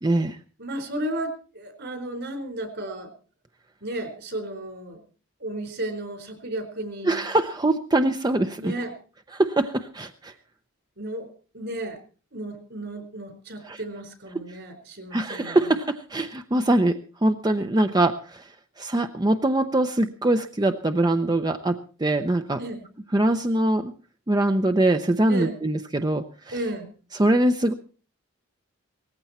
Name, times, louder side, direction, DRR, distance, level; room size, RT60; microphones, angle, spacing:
voice 1, 0.0-0.4 7.0-8.7 9.3-10.3 13.7-13.8 15.1-18.5 18.8-22.6 23.1-23.9 24.3-26.5 27.2-27.7, right 1 dB, 20° right, 8 dB, 0.7 m, -23 dB
voice 2, 0.6-3.1 3.8-5.0 5.4-7.2 8.6-8.9 11.0-11.3 11.5-12.0 12.3-15.7 22.6-22.8 25.3-25.6 26.5-26.9, right 1 dB, 60° right, 7 dB, 4.4 m, -33 dB
18.5 x 15.0 x 4.3 m, 0.38 s
head